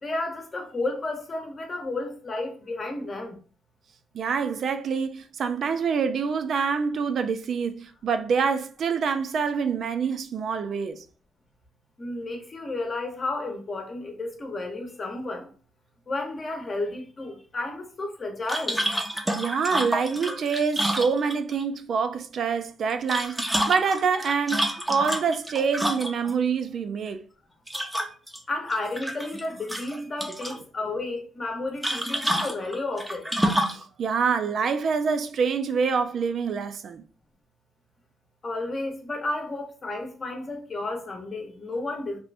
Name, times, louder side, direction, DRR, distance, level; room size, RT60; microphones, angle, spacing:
voice 1, 0.0-3.4 12.0-15.5 16.1-18.8 28.5-33.3 38.4-42.2, left 2 dB, 35° left, 0.8 m, -32 dB
voice 2, 4.1-11.0 19.3-27.2 33.7-37.0, right 6 dB, 60° right, 0.3 m, -26 dB
sound 1, 18.5-21.6 22.9-26.3 27.7-28.4 28.7-29.4 29.7-30.6 31.8-33.8, equal, 5° right, 0.5 m, -28 dB
2.9 x 2.5 x 3.3 m
cardioid pair, 90°, 0 cm